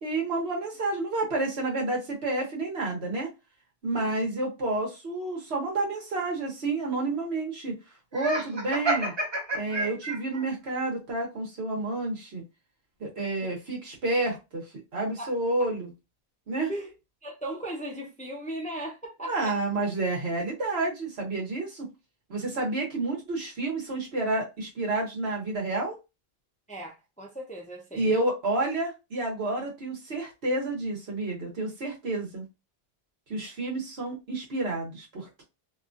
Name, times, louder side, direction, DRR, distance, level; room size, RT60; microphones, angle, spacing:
voice 1, 0.0-3.3 3.8-7.8 8.1-9.1 9.5-12.4 13.0-14.7 14.9-15.9 16.5-16.7 19.3-21.9 22.3-26.0 27.9-32.4 33.3-35.4, right 2 dB, 85° right, 1.4 m, -30 dB
voice 2, 3.9-4.3 15.2-15.3 16.7-16.9 17.2-19.6 22.5-22.7 26.7-28.1, right 1 dB, 10° left, 0.5 m, -37 dB
Laughter, 8.1-10.4, right 2 dB, 30° right, 0.7 m, -29 dB
2.9 x 2.3 x 2.6 m
omnidirectional pair, 1.0 m